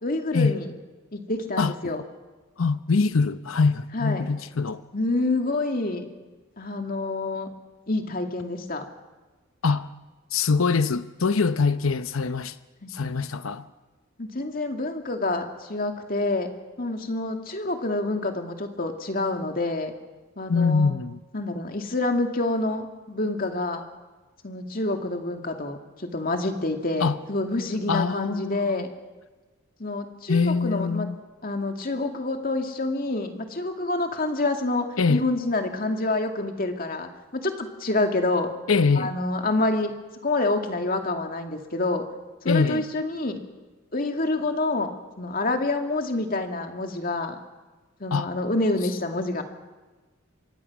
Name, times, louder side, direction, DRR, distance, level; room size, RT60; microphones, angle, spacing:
voice 1, 0.0-0.7 1.1-2.0 3.9-4.3 4.9-6.1 6.6-7.5 7.9-8.8 12.8-12.9 14.2-16.5 16.8-19.9 20.4-20.9 21.3-23.8 24.4-28.9 29.8-31.1 31.4-38.5 39.0-39.9 40.2-42.0 42.4-43.4 43.9-44.9 45.2-47.4 48.0-49.4, left 2 dB, 45° left, 2.3 m, -27 dB
voice 2, 2.6-4.8 9.6-9.9 10.3-12.6 12.9-13.7 20.5-21.2 27.0-27.2 27.9-28.8 30.3-31.2 35.0-35.2 38.7-39.1 42.5-42.9 48.1-48.3, left 4 dB, 80° left, 0.8 m, -23 dB
26.0 x 23.0 x 6.2 m
head